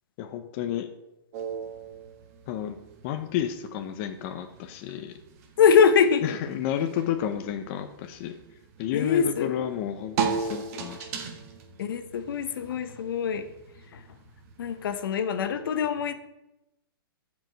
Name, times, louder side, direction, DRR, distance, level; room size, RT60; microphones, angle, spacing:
voice 1, 0.2-0.9 2.5-2.8 3.0-5.1 6.2-8.3 8.8-11.3, left 10 dB, 35° left, 6 dB, 0.7 m, -31 dB
sound 1, 1.3-14.9, right 6 dB, 40° right, 1.6 m, -38 dB
voice 2, 5.6-6.4 8.9-9.5 11.8-13.4 13.9-14.0 14.6-16.1, left 6 dB, 65° left, 10 dB, 1.1 m, -23 dB
15.0 x 5.3 x 4.6 m, 0.92 s
hypercardioid pair, 155°, 12 cm